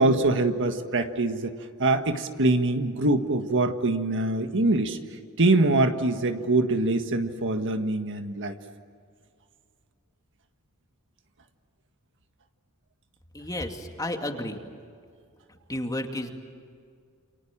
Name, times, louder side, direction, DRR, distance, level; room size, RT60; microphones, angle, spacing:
voice 1, 0.0-1.5 1.8-5.0 5.4-8.6, right 2 dB, 60° right, 7 dB, 1.7 m, -24 dB
voice 2, 13.3-14.6 15.7-16.3, left 1 dB, 15° left, 4 dB, 2.4 m, -32 dB
29.0 x 27.5 x 7.4 m, 2.2 s
head